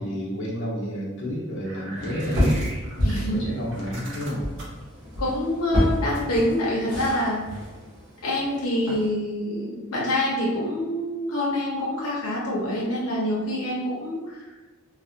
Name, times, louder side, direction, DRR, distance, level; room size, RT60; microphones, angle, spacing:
voice 1, 0.0-2.5 3.2-4.5, equal, 60° left, -6 dB, 0.8 m, -30 dB
sound 1, 1.6-3.2 3.7-4.8 6.1-6.5, right 1 dB, 55° right, 0.8 m, -38 dB
sound 2, 2.0-9.1, equal, 75° right, 1.1 m, -29 dB
voice 2, 3.0-3.4 5.2-7.4 8.2-14.4, left 1 dB, 85° left, -5 dB, 0.7 m, -26 dB
3.2 x 2.1 x 2.7 m, 1.2 s
head